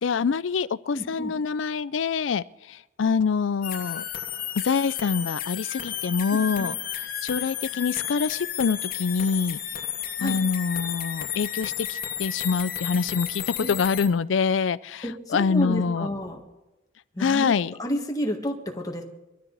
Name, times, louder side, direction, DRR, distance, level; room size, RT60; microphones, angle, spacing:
voice 1, 0.0-2.4 3.0-4.0 4.6-6.7 7.2-9.6 10.2-15.0 15.3-16.1 17.2-17.7, left 5 dB, 85° left, 18 dB, 0.4 m, -25 dB
voice 2, 0.9-1.3 6.3-6.7 10.2-10.4 13.6-13.7 15.0-16.4 17.1-19.0, equal, 20° left, 1 dB, 1.7 m, -30 dB
sound 1, 3.6-14.1, left 10 dB, 50° left, 1.2 m, -32 dB
23.0 x 13.0 x 4.1 m, 1.0 s
head